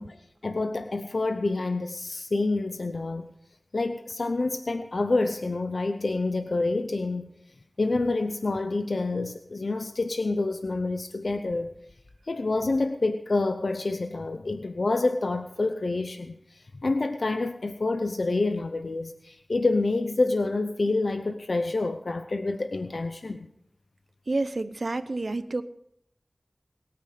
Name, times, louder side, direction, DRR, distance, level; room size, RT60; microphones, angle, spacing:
voice 1, 0.0-3.3 3.7-7.3 7.8-11.7 12.3-23.5, left 3 dB, 90° left, 8 dB, 0.8 m, -28 dB
voice 2, 24.3-25.6, right 2 dB, 75° right, 13 dB, 0.8 m, -29 dB
21.5 x 9.7 x 5.0 m, 0.75 s
wide cardioid pair, 45°, 0 cm